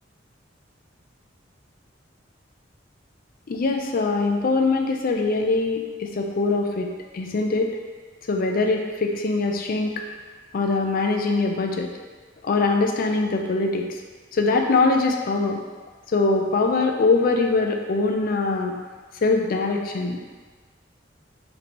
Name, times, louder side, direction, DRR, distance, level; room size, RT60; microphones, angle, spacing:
voice 1, 3.5-6.9 7.1-7.8 8.3-10.0 10.5-11.9 12.4-14.0 14.3-15.6 16.1-18.7 19.2-20.2, left 3 dB, 50° left, 3 dB, 0.4 m, -22 dB
3.2 x 2.8 x 4.2 m, 1.4 s
head